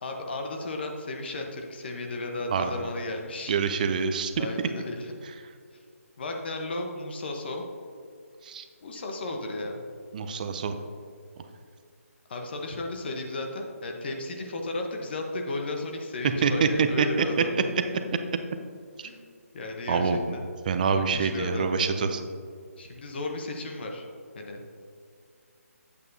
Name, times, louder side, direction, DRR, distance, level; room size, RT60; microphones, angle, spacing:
voice 1, 0.0-3.5 4.4-5.1 6.2-7.6 8.8-9.8 12.3-17.5 19.0-19.2 19.5-20.4 20.9-22.0 22.8-24.1 24.3-24.6, left 2 dB, 40° left, 2 dB, 1.0 m, -34 dB
voice 2, 3.5-4.5 8.4-8.6 10.1-10.8 16.4-17.1 19.9-20.2 20.7-22.3, right 5 dB, 35° right, 8 dB, 0.5 m, -25 dB
9.1 x 8.2 x 2.7 m, 2.3 s
figure-of-eight pair, 150°, 8 cm